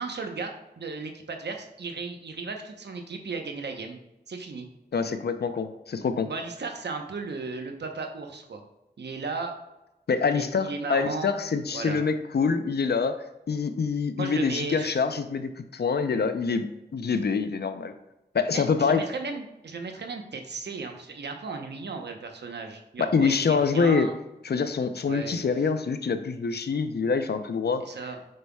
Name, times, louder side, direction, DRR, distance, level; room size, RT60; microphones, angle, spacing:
voice 1, 0.0-4.0 4.3-4.7 6.2-8.6 9.0-9.5 10.3-11.4 11.7-12.0 14.2-15.0 17.1-17.2 18.5-24.2 25.0-25.4 27.8-28.2, right 4 dB, 75° right, 4 dB, 0.9 m, -35 dB
voice 2, 4.9-6.3 10.1-16.7 16.9-17.9 18.3-19.0 23.0-24.1 24.4-27.8, left 5 dB, 70° left, 9 dB, 0.6 m, -25 dB
7.6 x 5.5 x 2.3 m, 0.95 s
cardioid pair, 50°, 18 cm